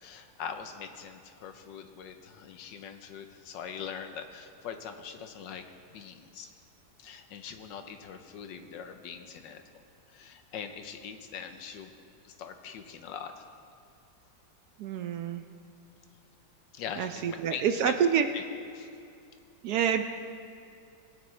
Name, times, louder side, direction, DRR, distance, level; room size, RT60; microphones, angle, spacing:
voice 1, 0.0-5.6 5.9-6.5 7.0-9.6 10.1-11.9 12.2-13.4 16.7-17.9 18.3-18.4 18.7-18.9, left 7 dB, 80° left, 6 dB, 1.4 m, -42 dB
voice 2, 14.8-15.4 17.0-18.3 19.6-20.0, right 8 dB, 70° right, 7 dB, 1.0 m, -27 dB
20.5 x 9.3 x 3.2 m, 2.5 s
omnidirectional pair, 2.0 m